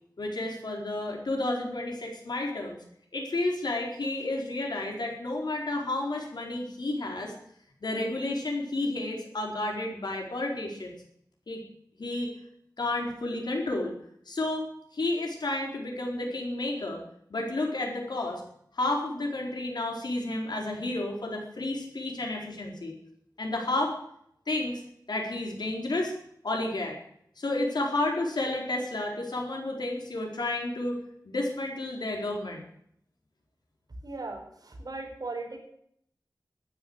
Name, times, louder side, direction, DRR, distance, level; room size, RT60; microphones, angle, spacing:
voice 1, 0.2-2.8 3.1-7.3 7.8-11.0 11.5-11.6 12.0-12.3 12.8-13.9 14.3-17.0 17.3-18.4 18.7-22.9 23.4-24.0 24.5-24.8 25.1-26.1 26.4-27.0 27.4-32.6, left 2 dB, 80° left, 0 dB, 4.4 m, -31 dB
voice 2, 34.0-35.6, right 3 dB, 65° right, 1 dB, 4.8 m, -38 dB
13.5 x 10.5 x 7.9 m, 0.70 s
wide cardioid pair, 85°, 7 cm